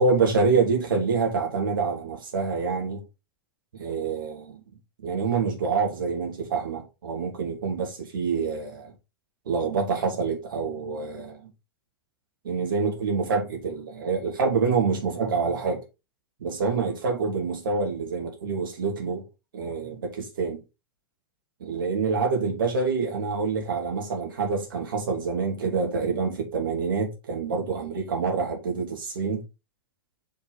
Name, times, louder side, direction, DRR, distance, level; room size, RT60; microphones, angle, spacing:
voice 1, 0.0-3.0 3.7-4.6 5.0-8.9 9.5-11.5 12.4-15.8 16.4-19.3 19.5-20.6 21.6-29.4, right 4 dB, 65° right, 2.9 m, -26 dB
6.3 x 5.4 x 4.2 m
figure-of-eight pair, 95°, 12 cm